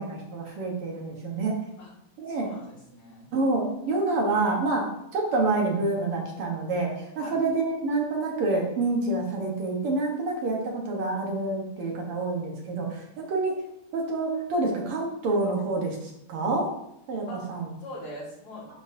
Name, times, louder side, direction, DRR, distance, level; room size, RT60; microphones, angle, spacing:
voice 1, 0.0-1.6 2.2-2.5 3.3-13.6 13.9-16.7 17.1-17.7, right 3 dB, 60° right, 0 dB, 1.8 m, -27 dB
voice 2, 2.2-3.3 7.2-7.4 17.3-17.5 17.8-18.7, left 1 dB, 70° left, -9 dB, 3.4 m, -42 dB
11.5 x 4.6 x 2.7 m, 0.80 s
omnidirectional pair, 3.5 m